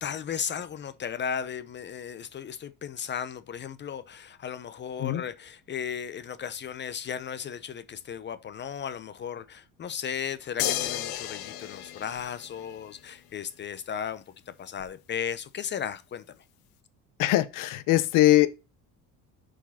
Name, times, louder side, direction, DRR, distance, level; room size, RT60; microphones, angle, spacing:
voice 1, 0.0-16.4, left 8 dB, 30° left, 0.7 m, -35 dB
sound 1, 10.6-13.1 14.8-14.9, left 12 dB, 85° left, 1.6 m, -33 dB
voice 2, 17.2-18.5, left 16 dB, 65° left, 1.0 m, -21 dB
6.6 x 5.0 x 5.7 m
cardioid pair, 145°, 34 cm